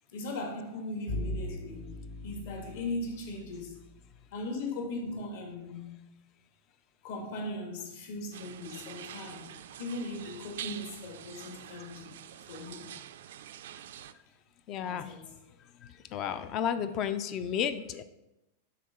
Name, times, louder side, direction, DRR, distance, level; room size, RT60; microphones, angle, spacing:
voice 1, 0.1-1.9 2.2-3.8 4.3-6.0 7.0-9.5 9.8-12.1 12.5-12.9 14.8-15.3, left 2 dB, 55° left, 2 dB, 1.5 m, -38 dB
Bowed string instrument, 1.1-4.1, left 1 dB, 85° left, 2.4 m, -39 dB
sound 1, 8.3-14.1, right 11 dB, 65° right, 0.3 m, -46 dB
voice 2, 14.7-15.1 16.1-18.0, left 8 dB, 25° left, 12 dB, 0.3 m, -32 dB
6.6 x 3.6 x 5.4 m, 0.93 s
supercardioid pair, 175°, 0 cm